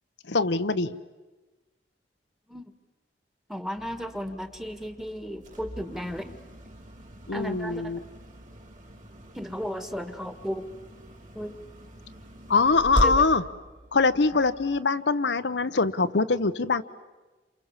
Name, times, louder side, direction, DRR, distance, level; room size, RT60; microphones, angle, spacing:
voice 1, 0.3-1.0 7.3-8.0 12.5-13.4 13.9-16.8, left 4 dB, 90° left, 10 dB, 0.9 m, -23 dB
voice 2, 3.5-6.3 7.3-7.9 9.3-10.6 11.3-11.5 13.0-13.2, equal, ahead, 9 dB, 1.6 m, -34 dB
sound 1, 3.8-14.8, equal, 45° right, 4.1 m, -38 dB
29.5 x 27.5 x 7.4 m, 1.2 s
head